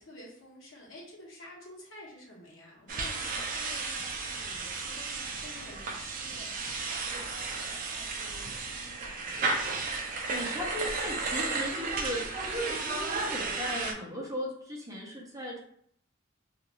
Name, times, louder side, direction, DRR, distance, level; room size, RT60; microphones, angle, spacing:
voice 1, 0.0-9.7, left 1 dB, 75° left, -3 dB, 1.0 m, -51 dB
Scratching (performance technique), 2.9-3.4 4.0-4.2 4.5-4.7 5.3-5.7 6.0-6.4 6.7-6.8 7.1-7.3, left 2 dB, 55° left, 0.5 m, -55 dB
sound 1, 2.9-13.9, right 3 dB, 40° right, 0.4 m, -34 dB
voice 2, 10.0-15.6, equal, 15° right, -4 dB, 0.7 m, -37 dB
2.5 x 2.5 x 3.1 m, 0.66 s
head